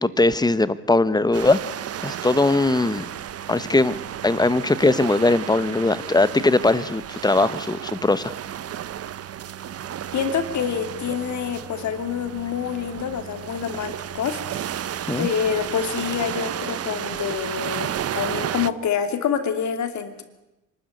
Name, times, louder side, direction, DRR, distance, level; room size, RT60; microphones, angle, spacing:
voice 1, 0.0-1.6 2.0-3.0 3.5-3.9 4.2-8.3 15.1-15.3, left 2 dB, 15° left, 15 dB, 1.1 m, -20 dB
sound 1, 1.3-18.7, right 10 dB, 50° right, 0.8 m, -33 dB
voice 2, 10.1-14.4 15.2-20.2, left 7 dB, 70° left, 8 dB, 2.8 m, -26 dB
25.0 x 12.5 x 9.7 m, 0.97 s
cardioid pair, 90°, 30 cm